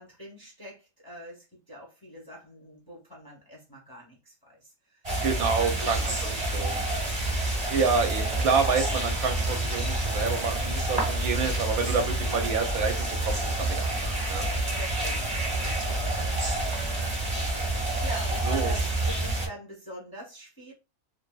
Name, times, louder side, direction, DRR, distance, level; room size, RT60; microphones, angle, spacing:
voice 1, 0.0-7.1 14.8-16.5 18.0-20.7, equal, 20° left, -3 dB, 0.6 m, -45 dB
sound 1, 5.0-19.5, right 1 dB, 30° right, 0.8 m, -28 dB
voice 2, 5.2-6.8 7.7-14.5 18.5-18.7, right 5 dB, 75° right, 5 dB, 1.0 m, -28 dB
2.6 x 2.6 x 2.2 m, 0.28 s
omnidirectional pair, 1.7 m